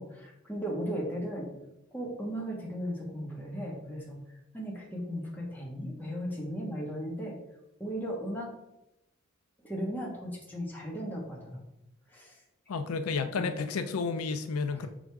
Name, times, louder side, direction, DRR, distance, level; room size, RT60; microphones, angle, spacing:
voice 1, 0.0-1.5 1.9-7.4 7.8-8.5 9.6-11.6 12.1-12.4 13.3-13.6 14.7-14.9, equal, 10° left, -3 dB, 1.4 m, -36 dB
voice 2, 12.7-14.9, left 4 dB, 85° left, 10 dB, 0.5 m, -31 dB
6.2 x 5.0 x 3.4 m, 0.90 s
head